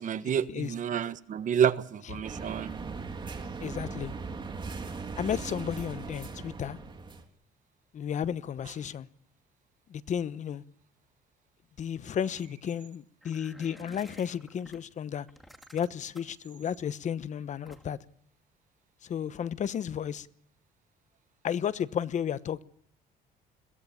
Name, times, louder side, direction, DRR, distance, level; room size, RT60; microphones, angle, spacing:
voice 1, 0.0-2.7, right 8 dB, 50° right, 1.3 m, -29 dB
sound 1, 2.2-7.2, right 4 dB, 30° right, 3.3 m, -39 dB
voice 2, 3.6-4.1 5.2-6.8 7.9-9.1 9.9-10.6 11.8-15.3 15.7-18.0 19.0-20.3 21.4-22.6, left 8 dB, 45° left, 1.0 m, -33 dB
sound 2, 13.2-14.8 15.3-16.4 17.7-18.1, equal, ahead, 2.3 m, -52 dB
22.5 x 16.5 x 8.7 m
cardioid pair, 110°, 17 cm